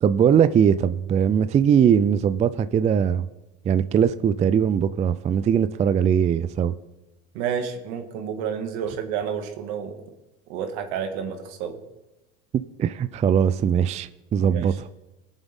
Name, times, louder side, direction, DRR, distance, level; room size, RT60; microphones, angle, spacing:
voice 1, 0.0-3.3 3.7-6.7 12.8-14.9, right 8 dB, 20° right, 14 dB, 0.3 m, -20 dB
voice 2, 7.3-9.9 10.5-11.8 14.4-14.7, right 7 dB, 70° right, 5 dB, 1.9 m, -30 dB
21.5 x 7.2 x 3.6 m, 1.0 s
supercardioid pair, 95°, 34 cm